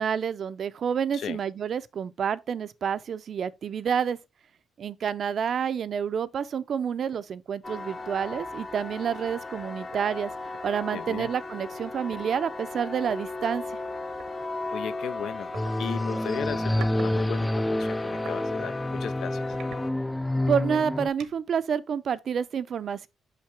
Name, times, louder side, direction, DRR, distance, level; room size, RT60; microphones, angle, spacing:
voice 1, 0.0-4.2 4.8-10.3 10.6-13.6 20.5-23.1, right 7 dB, 55° right, 0.5 m, -29 dB
sound 1, 7.1-7.3 7.8-7.9 8.3-8.6 9.6-9.7 9.9-11.3 12.1-12.3 13.0-13.2 14.2-14.4 15.5-15.7 16.5-17.1 17.5-18.4 18.9-19.0 19.5-20.3 20.7-21.5, right 8 dB, 80° right, 0.9 m, -46 dB
sound 2, 7.6-19.9, left 2 dB, 30° left, 0.7 m, -36 dB
voice 2, 10.9-11.3 14.7-19.4, left 8 dB, 70° left, 0.4 m, -36 dB
sound 3, 15.5-21.1, left 1 dB, 5° left, 0.3 m, -28 dB
5.8 x 5.5 x 3.3 m
cardioid pair, 90°, 0 cm